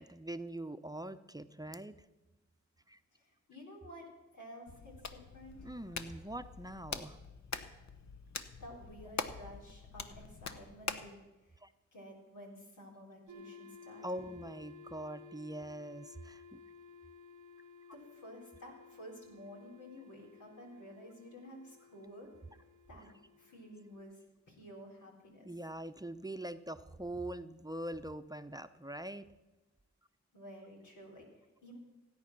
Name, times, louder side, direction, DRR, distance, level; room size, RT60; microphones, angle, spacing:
voice 1, 0.0-2.0 2.9-3.0 5.6-7.2 11.6-11.7 14.0-16.6 25.4-29.3, right 1 dB, 15° right, 9 dB, 0.7 m, -43 dB
voice 2, 3.1-5.6 8.6-11.6 11.9-14.3 17.9-22.3 22.9-23.1 23.4-24.2 24.5-25.5 30.3-31.8, equal, 85° left, -1 dB, 4.0 m, -52 dB
Hands, 4.7-11.1, left 5 dB, 65° left, 1.0 m, -44 dB
sound 1, 13.3-24.0, left 5 dB, 85° right, 1.0 m, -56 dB
16.5 x 9.5 x 6.1 m, 1.1 s
cardioid pair, 50°, 30 cm